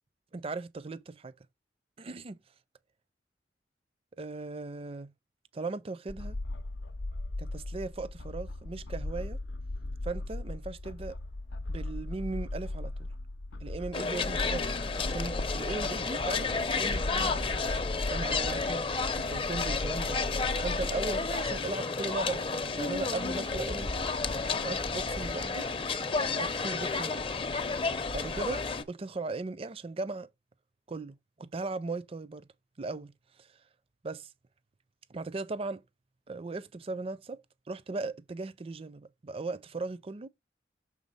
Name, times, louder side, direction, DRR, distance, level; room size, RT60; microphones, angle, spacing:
voice 1, 0.3-1.3 2.0-2.4 4.2-5.1 5.5-6.4 7.4-9.4 10.0-11.2 11.7-13.1 13.6-17.8 18.1-18.9 19.2-20.2 20.6-24.1 24.6-25.7 26.3-27.3 28.1-30.3 30.9-32.5 32.8-33.1 33.4-33.5 34.0-34.3 35.1-35.8 36.3-40.3, right 3 dB, 30° right, 0.5 m, -38 dB
sound 1, 6.1-21.6, left 2 dB, 80° left, 0.6 m, -38 dB
sound 2, 13.9-28.8, left 4 dB, 30° left, 0.6 m, -31 dB
6.3 x 3.6 x 5.4 m
head